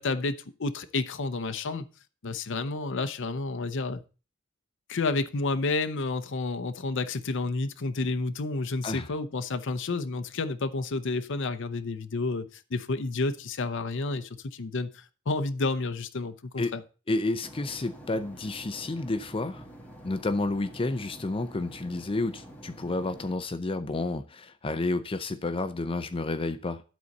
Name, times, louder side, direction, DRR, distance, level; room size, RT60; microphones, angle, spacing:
voice 1, 0.0-1.9 2.2-4.0 4.9-16.8, left 3 dB, 65° left, 0.7 m, -30 dB
voice 2, 17.1-19.6 20.0-26.8, left 2 dB, 25° left, 0.6 m, -30 dB
sound 1, 17.4-23.4, equal, 10° left, 1.9 m, -47 dB
12.0 x 4.2 x 6.5 m
head